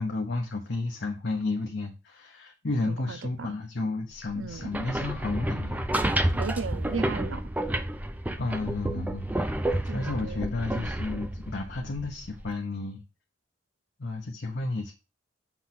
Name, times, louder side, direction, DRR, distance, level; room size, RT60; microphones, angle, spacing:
voice 1, 0.0-5.9 8.4-9.3 9.9-13.0 14.0-14.9, left 3 dB, 60° left, 1.0 m, -32 dB
voice 2, 2.9-3.5 4.3-4.7 6.3-7.4 9.9-10.4, right 5 dB, 90° right, 0.6 m, -36 dB
sound 1, 4.5-12.5, right 1 dB, 10° right, 0.5 m, -30 dB
7.0 x 3.1 x 5.9 m
head